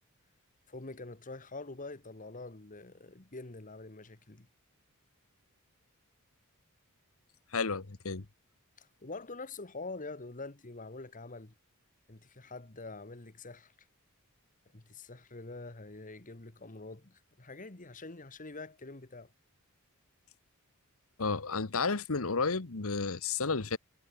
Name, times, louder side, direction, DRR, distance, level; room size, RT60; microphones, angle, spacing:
voice 1, 0.7-4.5 8.8-11.5 12.1-13.7 14.7-19.3, left 3 dB, 35° left, 1.5 m, -45 dB
voice 2, 7.5-8.2 21.2-23.8, left 4 dB, 70° left, 1.2 m, -32 dB
head